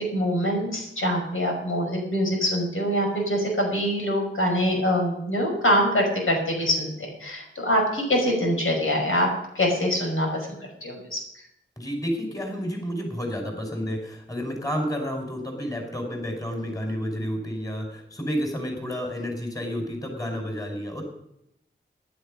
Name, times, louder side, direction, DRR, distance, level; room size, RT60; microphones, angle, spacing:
voice 1, 0.0-9.3 9.6-11.2, equal, 80° left, 0 dB, 5.6 m, -24 dB
voice 2, 11.8-21.0, equal, 15° left, 2 dB, 5.2 m, -30 dB
15.0 x 11.5 x 5.2 m, 0.79 s
wide cardioid pair, 50°, 21 cm